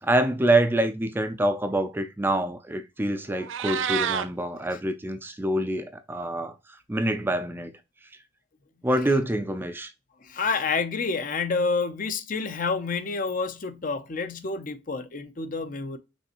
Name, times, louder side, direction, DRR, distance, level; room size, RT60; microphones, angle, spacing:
voice 1, 0.0-7.7 8.8-9.9, right 1 dB, 10° right, 0.4 m, -26 dB
Meow, 3.3-4.3, right 8 dB, 80° right, 0.5 m, -28 dB
voice 2, 10.2-16.0, left 4 dB, 45° left, 0.6 m, -28 dB
5.3 x 3.3 x 2.9 m
head